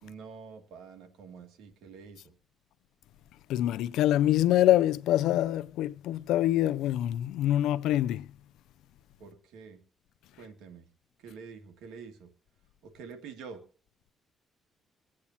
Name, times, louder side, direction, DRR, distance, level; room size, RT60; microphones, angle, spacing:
voice 1, 0.0-2.3 9.2-9.8 10.4-10.9 11.2-12.3 12.8-13.6, right 5 dB, 90° right, 2.3 m, -47 dB
voice 2, 3.5-8.3, left 13 dB, 90° left, 0.4 m, -25 dB
24.0 x 8.6 x 2.8 m
cardioid pair, 90°, 0 cm